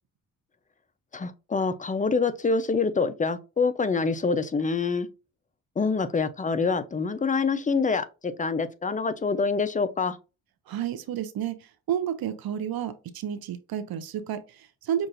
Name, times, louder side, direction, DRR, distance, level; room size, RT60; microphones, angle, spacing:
voice 1, 1.1-5.1 5.8-10.2, left 4 dB, 20° left, 0.6 m, -26 dB
voice 2, 10.7-15.1, right 9 dB, 75° right, 0.7 m, -31 dB
5.9 x 2.5 x 2.5 m
cardioid pair, 75°, 37 cm